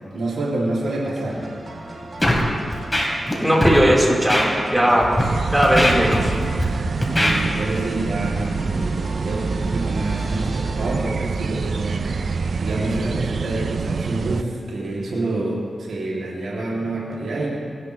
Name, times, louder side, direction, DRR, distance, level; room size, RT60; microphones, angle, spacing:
voice 1, 0.0-1.4 4.7-5.3 7.0-12.0 12.6-17.5, right 2 dB, 90° right, -5 dB, 2.7 m, -27 dB
sound 1, 1.3-13.6, right 2 dB, 50° right, 1.9 m, -38 dB
Scratching (performance technique), 2.2-2.4 2.7-3.3 3.6-3.8 4.3-4.4 5.0-5.2 5.6-6.6 7.0-7.3, equal, 10° left, 3.1 m, -20 dB
voice 2, 3.4-5.1 5.5-6.3, equal, 10° right, -4 dB, 4.1 m, -17 dB
sound 2, 5.2-14.4, right 4 dB, 70° right, 0.4 m, -26 dB
24.0 x 11.0 x 3.2 m, 2.2 s
cardioid pair, 65°, 0 cm